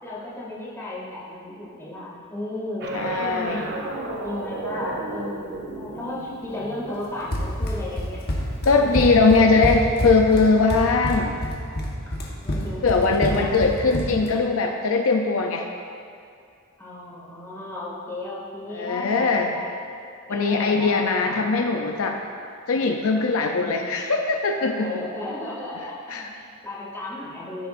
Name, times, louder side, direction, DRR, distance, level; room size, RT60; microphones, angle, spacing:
voice 1, 0.0-3.8 4.2-8.2 8.8-9.6 12.4-13.5 16.8-19.7 20.3-21.5 23.5-23.9 24.8-27.7, left 1 dB, 10° left, -7 dB, 2.2 m, -34 dB
sound 1, 2.8-8.1, right 2 dB, 50° right, 0.8 m, -34 dB
voice 2, 2.9-3.7 8.6-11.4 12.8-15.7 18.7-19.5 20.3-22.2 22.7-25.0 26.1-26.2, left 3 dB, 70° left, 3 dB, 0.5 m, -20 dB
Run, 7.3-14.3, equal, 50° left, 1.2 m, -27 dB
14.5 x 6.6 x 2.6 m, 2.3 s
head